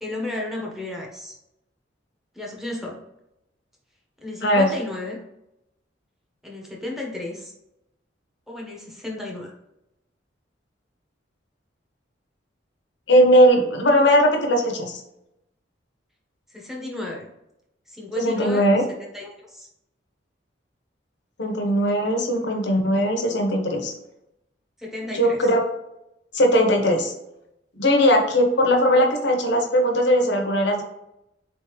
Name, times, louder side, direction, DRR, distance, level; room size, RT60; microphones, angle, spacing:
voice 1, 0.0-1.3 2.3-3.0 4.2-5.2 6.4-7.5 8.5-9.5 16.5-17.2 17.9-19.7 22.0-22.2 24.8-25.5, left 2 dB, ahead, -3 dB, 1.0 m, -33 dB
voice 2, 13.1-15.0 18.2-18.8 21.4-23.9 25.1-25.6 26.3-27.1 27.8-30.8, equal, 65° left, 2 dB, 0.9 m, -19 dB
4.0 x 3.6 x 3.1 m, 0.86 s
head